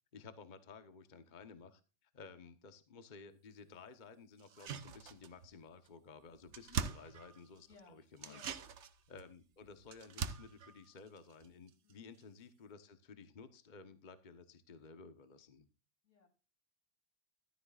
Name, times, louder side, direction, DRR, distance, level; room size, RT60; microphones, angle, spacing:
voice 1, 0.1-8.4 9.1-15.7, left 4 dB, 40° left, 10 dB, 1.1 m, -55 dB
sound 1, 4.4-5.6 5.9-6.0 6.2-7.7 8.2-11.9 12.2-12.3, right 6 dB, 70° right, 1.2 m, -44 dB
voice 2, 6.4-6.9 7.7-8.6 11.8-12.1 16.0-16.3, left 4 dB, 90° left, 5 dB, 3.3 m, -63 dB
14.0 x 13.0 x 2.4 m, 0.32 s
omnidirectional pair, 1.2 m